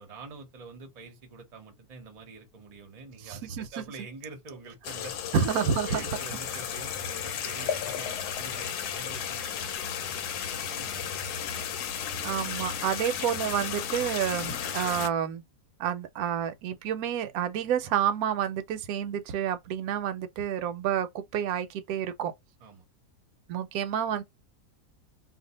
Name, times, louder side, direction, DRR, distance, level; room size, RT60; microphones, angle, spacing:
voice 1, 0.0-5.1 5.5-10.3 10.7-11.4 22.6-22.8, right 4 dB, 35° right, 0.7 m, -46 dB
voice 2, 3.3-3.6 5.3-6.0 12.2-15.4 15.8-22.3 23.5-24.2, right 9 dB, 70° right, 1.0 m, -29 dB
sound 1, 4.8-15.1, left 8 dB, 80° left, 1.1 m, -34 dB
2.6 x 2.3 x 3.9 m
omnidirectional pair, 1.7 m